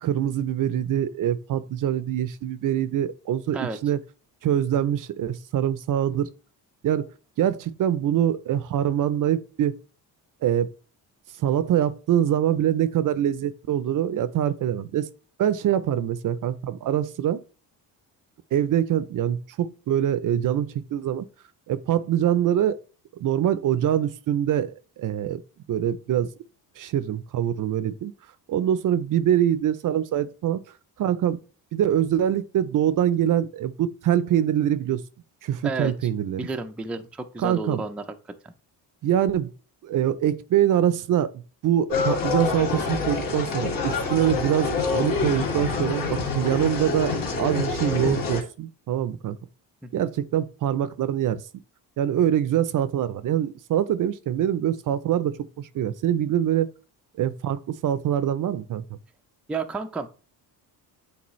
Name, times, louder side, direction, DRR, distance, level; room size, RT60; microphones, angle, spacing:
voice 1, 0.0-4.0 4.4-6.3 6.8-7.1 7.4-9.8 10.4-10.7 11.4-15.1 15.4-17.4 18.5-21.2 21.7-22.8 23.2-25.4 25.7-26.3 26.8-28.1 28.5-30.6 31.0-31.4 31.7-35.0 35.4-36.4 37.4-37.8 39.0-39.5 39.8-41.3 41.6-49.4 49.9-51.4 52.0-56.7 57.2-58.8, right 10 dB, 50° right, 0.5 m, -24 dB
voice 2, 36.4-38.0 49.8-50.1 59.5-60.1, right 3 dB, 5° right, 0.4 m, -31 dB
sound 1, 41.9-48.4, left 4 dB, 55° left, 2.2 m, -26 dB
8.6 x 3.9 x 3.1 m
cardioid pair, 120°, 41 cm